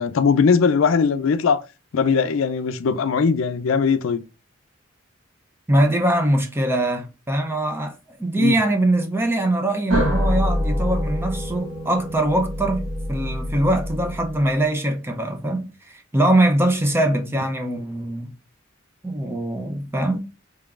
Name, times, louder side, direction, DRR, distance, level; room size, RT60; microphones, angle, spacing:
voice 1, 0.0-1.6 1.9-4.2 8.4-8.6, left 5 dB, 75° left, 0.4 m, -19 dB
voice 2, 5.7-18.3 19.0-20.2, right 1 dB, 10° right, 0.5 m, -22 dB
sound 1, 9.9-14.6, equal, 85° right, 1.2 m, -25 dB
3.7 x 3.3 x 2.4 m
head